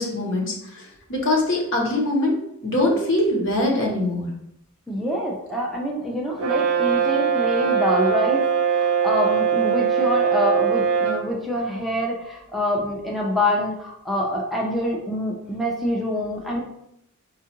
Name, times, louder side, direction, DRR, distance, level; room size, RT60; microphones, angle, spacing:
voice 1, 0.0-4.3, left 1 dB, 60° left, -1 dB, 1.0 m, -23 dB
voice 2, 4.9-16.6, left 1 dB, ahead, -3 dB, 0.5 m, -26 dB
Brass instrument, 6.4-11.3, right 7 dB, 80° right, 0.4 m, -21 dB
4.4 x 2.4 x 2.8 m, 0.76 s
head